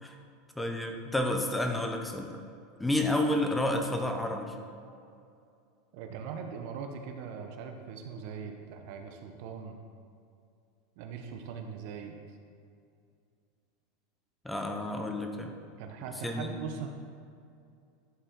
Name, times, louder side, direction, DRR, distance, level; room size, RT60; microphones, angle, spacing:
voice 1, 0.6-2.3 2.8-4.6 14.4-15.5 16.2-16.6, left 1 dB, 5° left, 3 dB, 0.7 m, -30 dB
voice 2, 5.9-9.8 11.0-12.2 15.8-16.9, right 6 dB, 60° right, 5 dB, 0.8 m, -41 dB
10.5 x 4.2 x 3.7 m, 2.4 s
supercardioid pair, 125°, 0 cm